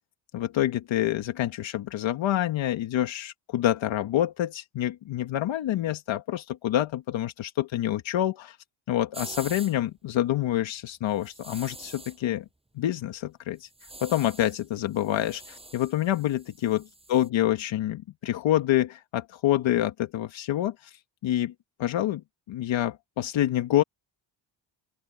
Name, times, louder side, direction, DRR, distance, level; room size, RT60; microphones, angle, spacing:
voice 1, 0.3-8.6 8.9-12.5 12.8-13.7 14.0-16.8 17.1-21.5 21.8-23.8, left 13 dB, 70° left, 1.9 m, -27 dB
sound 1, 9.1-9.8 11.2-12.2 13.6-14.7 14.9-17.3, right 2 dB, 10° right, 7.3 m, -45 dB
open air
cardioid pair, 80°, 47 cm